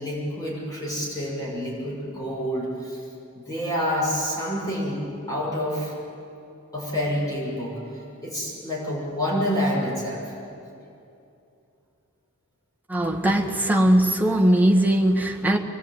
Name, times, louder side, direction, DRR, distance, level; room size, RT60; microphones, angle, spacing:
voice 1, 0.0-3.0 3.3-5.9 6.7-10.2, equal, 20° left, -5 dB, 6.9 m, -28 dB
voice 2, 12.9-15.6, right 1 dB, 10° right, -1 dB, 1.7 m, -20 dB
25.5 x 21.0 x 9.1 m, 2.7 s
head